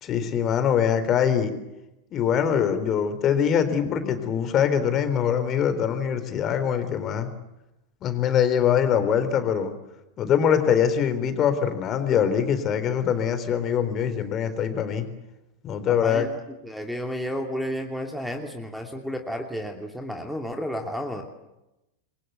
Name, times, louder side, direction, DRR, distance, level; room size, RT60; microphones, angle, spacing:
voice 1, 0.0-1.5 2.1-7.3 8.0-9.7 10.2-15.1 15.6-16.3, left 8 dB, 30° left, 9 dB, 3.8 m, -23 dB
voice 2, 15.9-16.3 16.6-21.2, equal, ahead, 4 dB, 2.8 m, -32 dB
29.0 x 23.0 x 8.2 m, 0.93 s
figure-of-eight pair, 90°, 0 cm